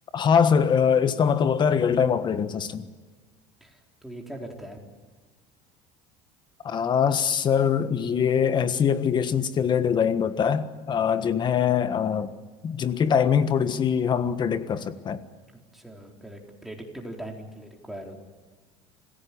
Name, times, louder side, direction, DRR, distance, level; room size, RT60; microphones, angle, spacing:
voice 1, 0.1-2.8 6.6-12.3 12.6-15.2, left 7 dB, 35° left, 1.4 m, -23 dB
voice 2, 3.6-4.8 11.1-11.6 15.5-18.2, right 1 dB, ahead, 4.2 m, -41 dB
26.0 x 16.5 x 8.7 m
supercardioid pair, 120°, 14 cm